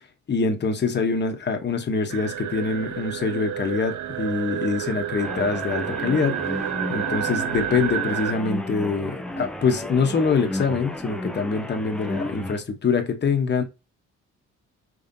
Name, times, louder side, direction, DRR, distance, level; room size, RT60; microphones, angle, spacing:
voice 1, 0.3-6.4 6.9-13.6, left 5 dB, 35° left, 1.1 m, -24 dB
sound 1, 2.1-8.3, right 10 dB, 70° right, 0.6 m, -30 dB
sound 2, 5.2-12.6, left 1 dB, 5° left, 0.6 m, -33 dB
5.2 x 3.4 x 2.7 m
cardioid pair, 90°, 30 cm